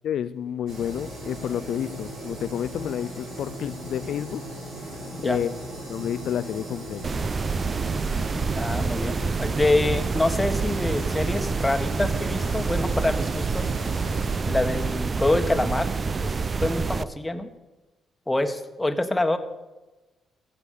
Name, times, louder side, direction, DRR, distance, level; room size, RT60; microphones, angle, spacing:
voice 1, 0.0-4.4 4.8-5.5 5.9-7.0, left 9 dB, 70° left, 12 dB, 0.4 m, -30 dB
sound 1, 0.7-14.4, right 1 dB, 70° right, 4.8 m, -37 dB
sound 2, 6.9-13.5, right 1 dB, 20° right, 5.8 m, -43 dB
sound 3, 7.0-17.0, right 4 dB, 40° right, 0.6 m, -27 dB
voice 2, 8.6-13.7 14.4-15.9 16.2-17.5 18.3-19.4, left 2 dB, 15° left, 7 dB, 1.5 m, -26 dB
15.0 x 8.2 x 7.0 m, 1.1 s
supercardioid pair, 55°, 0 cm